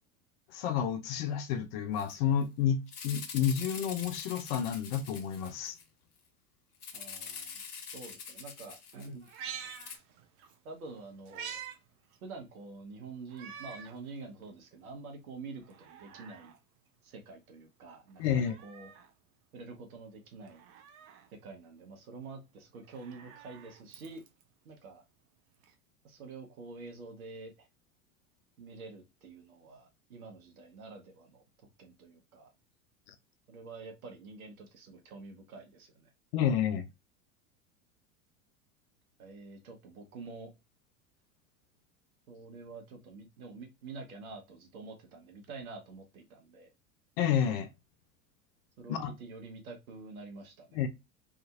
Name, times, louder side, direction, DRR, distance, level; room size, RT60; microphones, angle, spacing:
voice 1, 0.5-5.8 18.2-18.6 33.1-33.2 36.3-36.8 47.2-47.7 48.9-49.1 50.7-50.9, left 8 dB, 45° left, 0.4 m, -30 dB
Rattle (instrument), 2.0-2.1 2.4-2.5 2.9-5.8 6.8-9.4 9.7-10.0, left 6 dB, 85° left, 0.7 m, -44 dB
voice 2, 6.9-9.3 10.6-11.6 12.2-16.5 17.0-18.9 19.5-20.6 21.4-24.2 24.6-25.0 26.0-27.7 28.6-31.4 31.8-32.5 33.5-36.1 39.2-40.5 42.3-46.7 48.8-50.8, right 3 dB, 70° right, 0.9 m, -47 dB
Meow, 9.2-10.6 10.9-11.8 12.1-12.2 13.3-14.0 14.5-14.6 15.6-16.6 18.1-19.1 20.5-21.3 22.8-24.4 25.6-25.7, right 7 dB, 35° right, 0.4 m, -47 dB
2.8 x 2.4 x 2.4 m
figure-of-eight pair, 85°, 44 cm